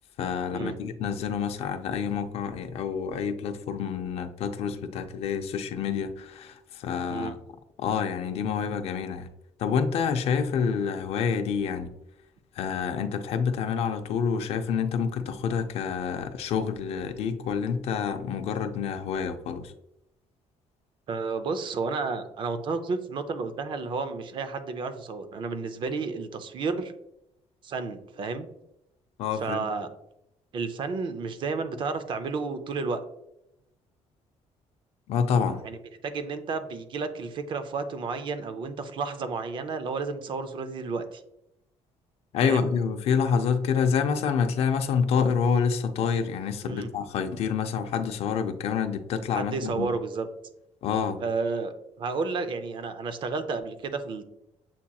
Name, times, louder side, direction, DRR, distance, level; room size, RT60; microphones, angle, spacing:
voice 1, 0.2-7.4 7.8-9.3 9.6-11.9 12.6-19.7 29.2-29.7 35.1-35.6 42.3-49.9 50.8-51.2, left 6 dB, 60° left, 0.5 m, -27 dB
voice 2, 21.1-26.9 27.6-28.5 29.4-29.9 30.5-33.0 35.5-35.8 36.0-41.2 42.4-42.7 46.6-46.9 49.3-50.3 51.2-54.2, right 4 dB, 45° right, 0.4 m, -31 dB
7.2 x 2.8 x 2.2 m
cardioid pair, 160°, 12 cm